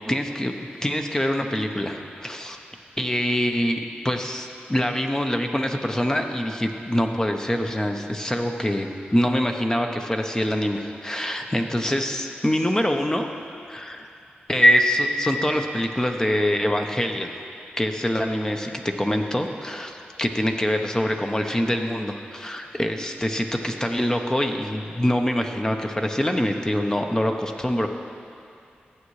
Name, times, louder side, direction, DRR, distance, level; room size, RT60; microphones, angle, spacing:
voice 1, 0.0-0.5 0.8-2.6 3.0-13.3 13.7-14.1 14.5-17.3 17.8-18.7 19.0-27.9, equal, 15° left, 4 dB, 0.8 m, -24 dB
14.0 x 8.3 x 3.2 m, 2.5 s
cardioid pair, 60°, 4 cm